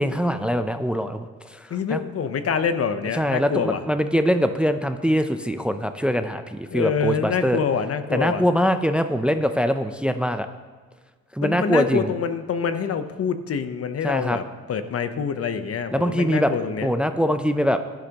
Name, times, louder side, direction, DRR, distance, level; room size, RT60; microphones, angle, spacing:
voice 1, 0.0-2.0 3.1-7.6 8.1-10.5 11.3-12.1 14.0-14.4 15.9-16.5 16.8-17.8, equal, 5° right, 9 dB, 0.6 m, -23 dB
voice 2, 1.7-3.8 6.7-8.4 11.4-16.9, left 6 dB, 50° left, 10 dB, 0.9 m, -26 dB
16.0 x 12.0 x 3.0 m, 1.5 s
cardioid pair, 90°, 30 cm